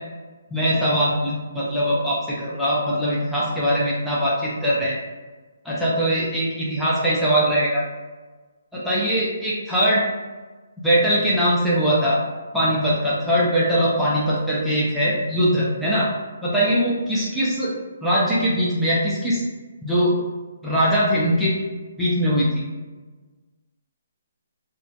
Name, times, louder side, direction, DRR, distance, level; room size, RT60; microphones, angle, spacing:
voice 1, 0.5-5.0 5.6-7.8 8.7-10.0 10.8-12.2 12.5-16.1 16.4-17.7 18.0-19.4 19.8-20.1 20.6-21.5 22.0-22.6, equal, ahead, -9 dB, 0.4 m, -21 dB
2.3 x 2.1 x 2.7 m, 1.3 s
hypercardioid pair, 160°, 0 cm